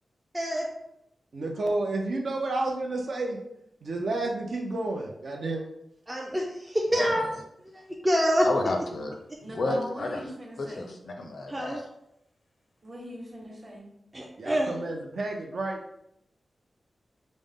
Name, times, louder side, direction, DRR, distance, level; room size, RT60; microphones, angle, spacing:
voice 1, 0.3-0.6 6.1-7.3 7.7-8.5 11.5-11.8 14.1-14.7, equal, 15° right, -2 dB, 0.4 m, -26 dB
voice 2, 1.3-3.4 3.8-5.7 14.4-15.8, right 2 dB, 60° right, 1 dB, 0.6 m, -30 dB
voice 3, 6.9-7.4 8.4-9.1 9.4-10.2 10.6-11.9, left 2 dB, 65° left, 3 dB, 0.5 m, -31 dB
voice 4, 9.4-10.9 12.8-13.9, equal, 35° right, -2 dB, 1.0 m, -40 dB
5.2 x 2.1 x 3.6 m, 0.80 s
wide cardioid pair, 165°, 0 cm